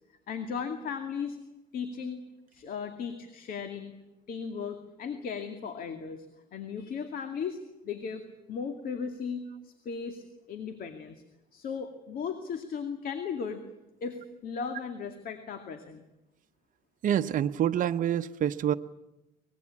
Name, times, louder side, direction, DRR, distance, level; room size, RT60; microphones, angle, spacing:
voice 1, 0.3-1.4 1.7-2.2 2.5-4.0 4.3-6.3 6.5-7.6 7.8-11.2 11.5-13.6 14.0-16.0, left 6 dB, 60° left, 7 dB, 2.3 m, -36 dB
voice 2, 17.0-18.7, right 10 dB, 50° right, 7 dB, 0.9 m, -27 dB
24.0 x 21.0 x 8.7 m, 0.95 s
cardioid pair, 110°, 17 cm